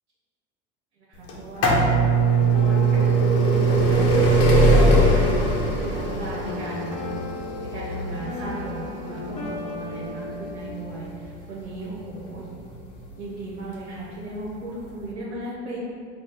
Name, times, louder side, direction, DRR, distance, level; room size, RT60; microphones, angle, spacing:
voice 1, 1.1-7.0 7.6-12.5 13.2-15.8, right 2 dB, 90° right, -7 dB, 0.8 m, -36 dB
sound 1, 1.3-12.9 13.8-13.9 14.8-14.9 15.1-15.2, right 2 dB, 45° left, 0.9 m, -21 dB
sound 2, 2.0-10.7, left 2 dB, 20° left, 1.0 m, -36 dB
4.5 x 2.3 x 4.4 m, 2.3 s
hypercardioid pair, 75°, 33 cm